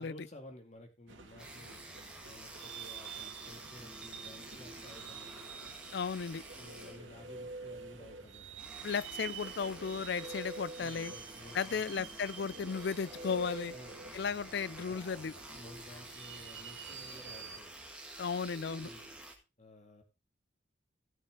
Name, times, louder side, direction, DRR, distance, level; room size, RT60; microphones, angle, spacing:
voice 1, 0.0-5.5 6.6-8.6 10.8-11.8 13.6-14.0 14.9-15.1 15.5-17.7 18.8-19.1 19.6-20.0, left 1 dB, 35° left, 2.3 m, -54 dB
sound 1, 1.1-17.6, right 8 dB, 90° right, 2.3 m, -50 dB
sound 2, 1.4-19.3, right 1 dB, 5° right, 1.9 m, -50 dB
voice 2, 5.9-6.4 8.8-11.1 11.5-13.7 14.1-15.3 18.2-18.9, left 6 dB, 60° left, 0.4 m, -35 dB
Guitar, 6.1-8.6 9.4-14.8, right 1 dB, 60° right, 2.6 m, -49 dB
16.0 x 6.5 x 3.8 m
head